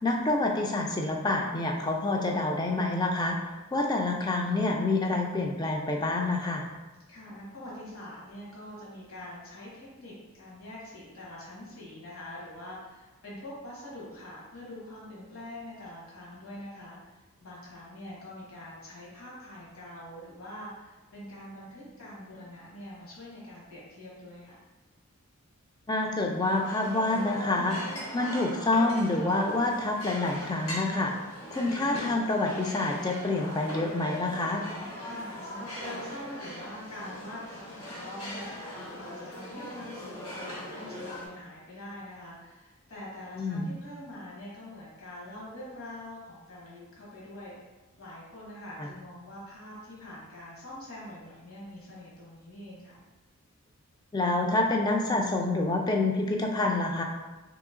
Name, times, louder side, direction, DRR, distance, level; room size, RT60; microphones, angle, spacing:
voice 1, 0.0-6.7 25.9-31.1 31.5-34.6 43.4-43.7 48.8-48.9 54.1-57.0, left 2 dB, 20° left, 1 dB, 0.3 m, -27 dB
voice 2, 7.1-24.6 35.0-47.5 48.0-53.0, left 1 dB, 70° left, -6 dB, 1.3 m, -44 dB
sound 1, 26.3-41.3, left 1 dB, 85° left, 1.5 m, -40 dB
3.0 x 2.9 x 3.6 m, 1.2 s
head